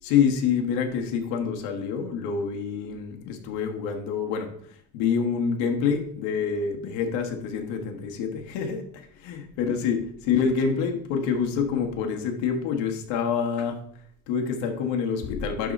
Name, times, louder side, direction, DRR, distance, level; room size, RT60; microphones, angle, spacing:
voice 1, 0.0-4.5 4.9-13.8 14.3-15.7, left 6 dB, 85° left, 3 dB, 1.5 m, -27 dB
11.5 x 3.8 x 4.1 m, 0.63 s
cardioid pair, 150°, 43 cm